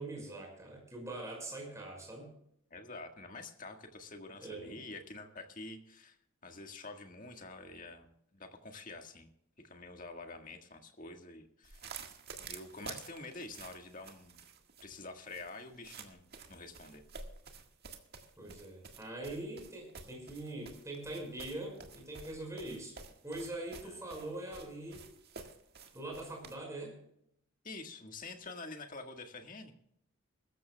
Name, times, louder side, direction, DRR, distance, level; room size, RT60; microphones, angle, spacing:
voice 1, 0.0-2.3 4.4-4.8 18.4-22.9 23.2-25.0 25.9-26.9, right 2 dB, 15° right, 0 dB, 5.5 m, -43 dB
voice 2, 2.7-6.2 6.4-9.3 9.6-11.9 12.4-14.4 14.8-17.0 23.8-24.0 27.6-29.7, left 3 dB, 40° left, 4 dB, 1.7 m, -47 dB
sound 1, 11.6-26.5, right 5 dB, 45° right, 1.8 m, -51 dB
22.5 x 14.0 x 2.3 m, 0.73 s
head